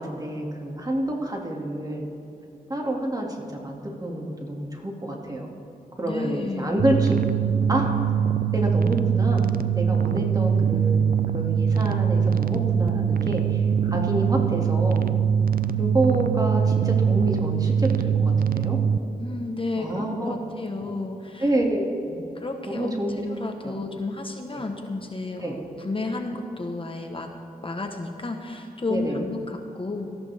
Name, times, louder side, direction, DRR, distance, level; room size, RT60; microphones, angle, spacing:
voice 1, 0.0-2.1 2.7-5.5 6.0-7.1 7.4-7.9 8.5-11.0 11.3-15.1 15.8-18.8 19.8-20.3 21.4-22.2 22.7-23.2 23.6-23.8 24.5-24.6 25.4-25.6 28.9-29.2, right 1 dB, 25° right, 0 dB, 2.3 m, -28 dB
voice 2, 6.0-6.9 19.2-21.5 22.3-27.3 27.6-30.1, left 2 dB, 35° left, 4 dB, 1.2 m, -32 dB
sound 1, 6.8-19.0, right 7 dB, 65° right, 0.5 m, -22 dB
18.5 x 14.0 x 3.5 m, 2.8 s
cardioid pair, 70°, 16 cm